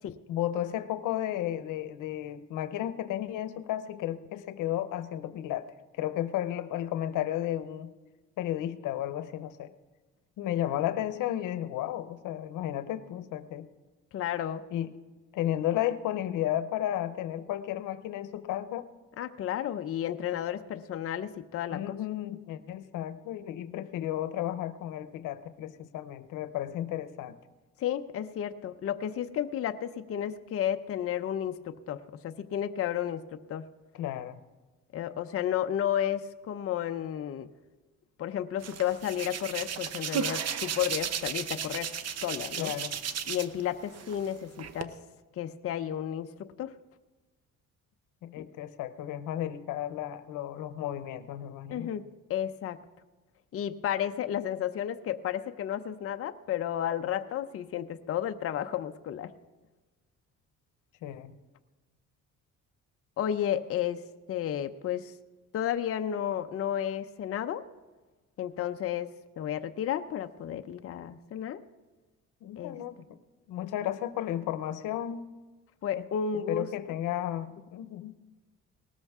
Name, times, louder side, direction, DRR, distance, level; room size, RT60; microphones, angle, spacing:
voice 1, 0.3-5.6 5.9-7.9 8.4-9.7 10.4-13.7 14.7-14.9 15.3-18.9 21.7-27.4 33.9-34.4 42.6-43.0 48.2-51.9 61.0-61.4 72.4-73.0 73.5-75.3 76.0-76.1 76.5-78.1, left 12 dB, 90° left, 12 dB, 0.8 m, -33 dB
voice 2, 14.1-14.6 19.2-21.8 27.8-33.2 33.5-33.7 34.9-37.5 38.2-41.9 42.2-42.7 43.3-44.9 45.4-46.7 48.4-48.5 51.7-52.0 52.3-52.8 53.5-59.3 63.2-64.0 64.3-65.1 65.5-67.6 68.4-69.1 69.4-71.6 72.5-72.8 75.8-77.0, left 10 dB, 50° left, 8 dB, 0.6 m, -32 dB
Hands, 38.6-43.6 43.9-44.8, right 8 dB, 55° right, 0.9 m, -34 dB
19.0 x 13.5 x 3.6 m, 1.2 s
cardioid pair, 120°, 31 cm